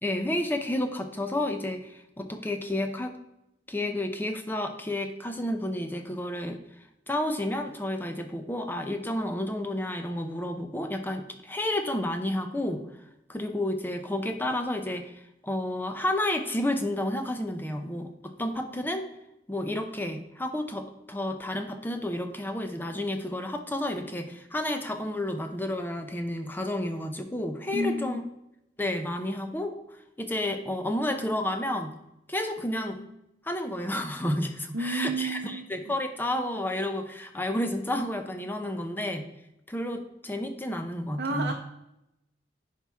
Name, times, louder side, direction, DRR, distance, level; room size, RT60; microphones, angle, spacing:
voice 1, 0.0-3.2 3.7-6.6 7.1-12.8 13.3-15.1 15.4-19.1 19.5-28.2 28.8-29.8 30.2-31.9 32.3-33.0 33.4-39.2 39.7-41.5, left 1 dB, 10° left, 6 dB, 0.6 m, -31 dB
voice 2, 27.7-28.2 34.7-35.7 41.2-41.5, right 2 dB, 70° right, 1 dB, 0.7 m, -30 dB
10.5 x 4.5 x 3.5 m, 0.84 s
head